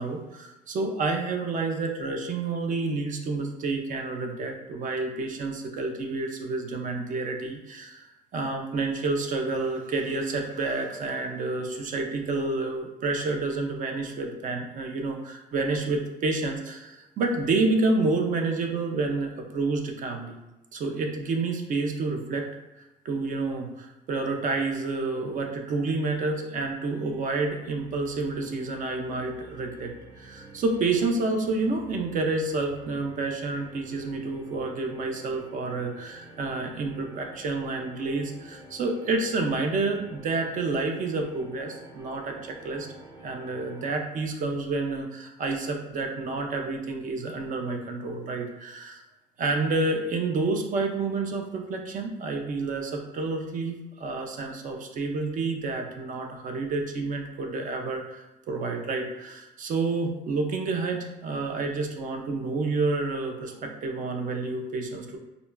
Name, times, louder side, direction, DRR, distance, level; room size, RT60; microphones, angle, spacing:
voice 1, 0.0-20.4 20.7-22.5 22.8-42.9 43.2-49.0 49.4-65.2, right 3 dB, 50° right, 3 dB, 0.5 m, -29 dB
sound 1, 26.1-43.9, right 1 dB, 80° right, 1.0 m, -50 dB
3.8 x 2.2 x 2.2 m, 1.0 s
cardioid pair, 110°, 17 cm